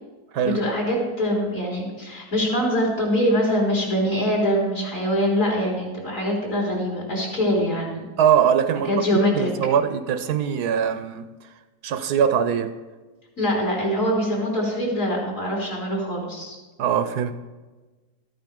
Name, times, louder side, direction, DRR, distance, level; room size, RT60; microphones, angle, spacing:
voice 1, 0.4-8.1 8.9-9.5 13.4-16.6, equal, 50° left, 4.1 m, -23 dB
voice 2, 8.2-11.3 11.8-12.8 16.8-17.3, right 8 dB, 75° right, 1.3 m, -22 dB
14.0 x 9.2 x 5.2 m
omnidirectional pair, 1.8 m